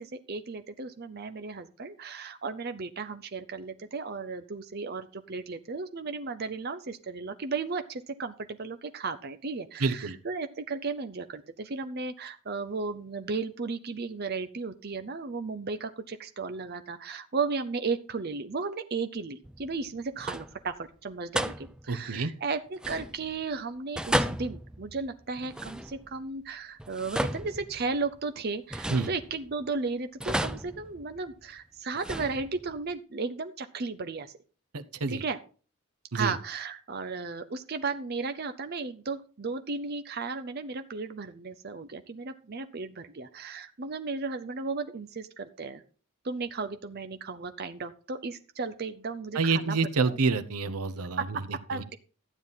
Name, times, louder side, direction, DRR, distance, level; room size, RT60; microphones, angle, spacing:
voice 1, 0.0-34.3 35.1-35.4 36.1-45.8 46.2-49.8 50.0-50.2 51.2-51.4 51.7-52.0, right 4 dB, 45° right, 10 dB, 0.6 m, -35 dB
voice 2, 9.8-10.2 21.9-22.3 28.9-29.1 34.7-35.2 36.1-36.3 49.3-51.4 51.7-51.8, right 4 dB, 85° right, 12 dB, 0.9 m, -28 dB
sound 1, 19.4-19.9 20.2-20.7 21.4-22.0 22.8-23.4 24.0-26.2 26.8-28.2 28.7-29.7 30.2-31.4 31.9-32.8, equal, 5° right, 0.4 m, -34 dB
12.5 x 9.2 x 4.1 m, 0.37 s
head